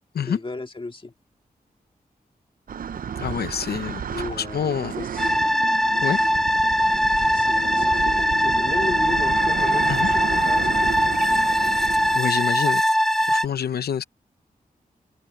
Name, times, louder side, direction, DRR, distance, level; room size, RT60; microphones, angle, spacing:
voice 1, 0.2-1.1 4.1-5.3 7.3-11.1, left 3 dB, 30° left, 1.9 m, -35 dB
sound 1, 2.7-12.2, right 7 dB, 60° right, 0.5 m, -32 dB
voice 2, 3.2-4.9 6.0-6.2 9.9-10.1 12.1-12.8 13.2-14.0, left 8 dB, 85° left, 0.7 m, -27 dB
sound 2, 5.2-13.5, equal, ahead, 0.6 m, -21 dB
sound 3, 6.6-10.6, left 5 dB, 65° left, 6.6 m, -49 dB
cardioid pair, 75°, 16 cm